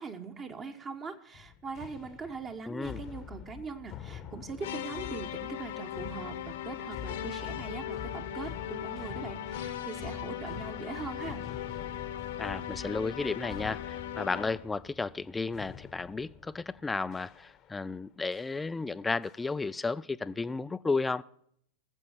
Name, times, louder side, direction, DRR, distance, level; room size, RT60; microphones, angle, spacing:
voice 1, 0.0-11.4, right 4 dB, 25° right, 1.1 m, -41 dB
Footsteps With Natural Reverb, 1.3-17.9 18.3-18.6 19.2-19.8, left 9 dB, 30° left, 0.9 m, -46 dB
voice 2, 2.7-3.0 12.4-21.2, left 3 dB, 10° left, 0.4 m, -33 dB
sound 1, 4.6-14.7, left 10 dB, 60° left, 1.0 m, -39 dB
19.5 x 7.9 x 4.4 m
figure-of-eight pair, 90°, 0 cm